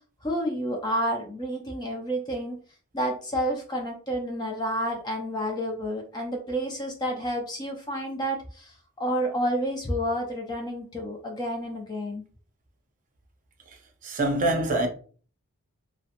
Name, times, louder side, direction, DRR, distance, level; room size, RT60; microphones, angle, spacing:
voice 1, 0.2-2.6 2.9-12.2, equal, 20° left, 0.4 m, -30 dB
voice 2, 14.0-14.9, right 1 dB, 35° right, 0.5 m, -24 dB
2.8 x 2.0 x 2.5 m
head